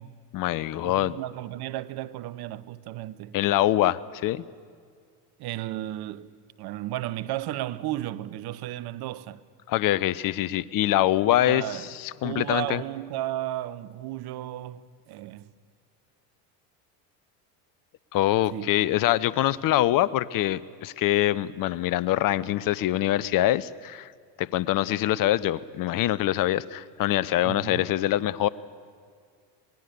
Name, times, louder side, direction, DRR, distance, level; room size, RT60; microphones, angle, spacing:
voice 1, 0.3-1.2 3.3-4.4 9.7-12.8 18.1-24.1 24.4-28.5, left 14 dB, 45° left, 0.8 m, -24 dB
voice 2, 0.8-3.4 5.4-6.3 6.6-9.4 11.3-11.9 12.2-15.5 18.5-18.8 27.4-27.9, right 14 dB, 50° right, 1.0 m, -34 dB
25.5 x 20.0 x 6.8 m
hypercardioid pair, 75°, 48 cm